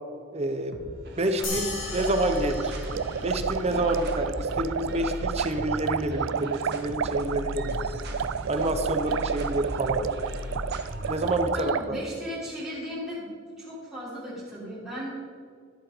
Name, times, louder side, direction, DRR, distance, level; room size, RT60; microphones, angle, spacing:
voice 1, 0.3-0.8 1.2-2.7 3.2-7.8 8.5-10.0 11.1-11.7, right 1 dB, 30° right, 7 dB, 0.7 m, -28 dB
sound 1, 0.7-11.6, equal, 55° right, 1.5 m, -36 dB
sound 2, 1.4-4.2, left 3 dB, 75° left, 2.8 m, -37 dB
sound 3, 1.9-11.8, right 7 dB, 75° right, 0.4 m, -31 dB
voice 2, 11.5-13.3 13.6-15.1, equal, 5° right, -13 dB, 3.2 m, -36 dB
12.5 x 7.5 x 5.1 m, 2.1 s
head